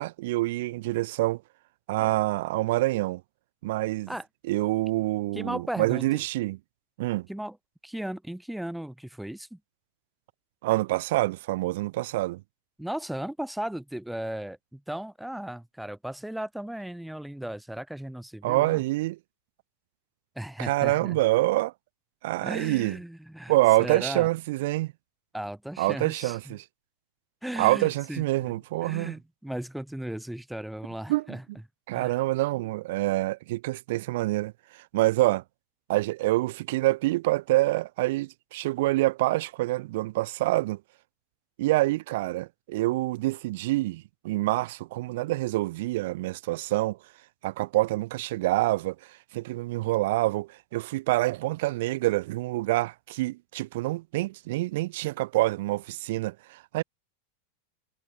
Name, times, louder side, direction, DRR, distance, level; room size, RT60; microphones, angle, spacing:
voice 1, 0.0-1.4 1.9-3.2 3.6-4.1 4.5-6.6 7.0-7.3 10.6-12.4 18.4-19.2 20.6-21.7 22.2-23.0 23.5-24.9 25.8-26.6 27.6-29.1 31.1-31.2 31.9-35.4 35.9-40.8 41.6-47.0 47.4-56.8, right 18 dB, 50° right, 0.5 m, -26 dB
voice 2, 5.3-6.1 7.3-7.6 7.8-9.6 12.8-18.8 20.4-21.2 22.4-23.5 23.8-24.3 25.3-26.6 27.4-31.4 31.9-32.2, right 1 dB, ahead, 1.1 m, -36 dB
figure-of-eight pair, 90°, 0 cm